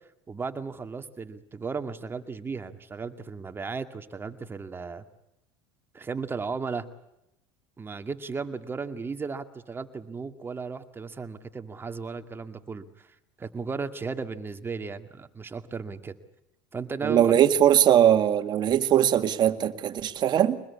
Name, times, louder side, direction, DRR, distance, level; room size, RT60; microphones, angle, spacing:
voice 1, 0.3-5.0 5.9-6.9 7.8-16.1 16.7-17.6, right 4 dB, 20° right, 2.1 m, -35 dB
voice 2, 17.0-20.6, right 10 dB, 45° right, 2.0 m, -21 dB
24.5 x 21.0 x 8.5 m
supercardioid pair, 100°, 11 cm